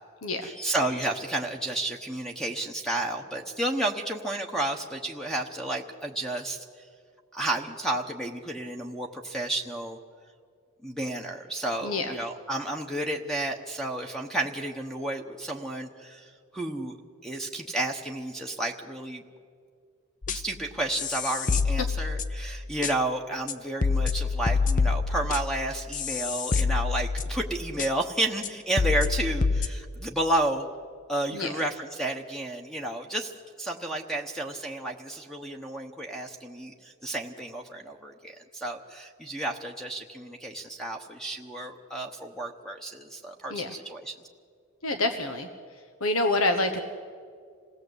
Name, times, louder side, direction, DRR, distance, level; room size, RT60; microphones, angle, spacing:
voice 1, 0.4-6.9 7.3-10.0 10.8-17.0 17.2-19.2 20.3-30.7 31.1-33.3 33.6-44.1, right 1 dB, ahead, 3 dB, 1.0 m, -31 dB
sound 1, 20.2-20.6 20.9-22.5 22.8-22.9 23.5-23.6 23.8-27.5 27.8-27.9 28.4-28.5 28.8-29.7, left 4 dB, 40° left, 0.7 m, -27 dB
voice 2, 44.8-45.5 46.0-46.8, left 2 dB, 80° left, 7 dB, 1.2 m, -26 dB
27.0 x 17.5 x 8.1 m, 2.1 s
head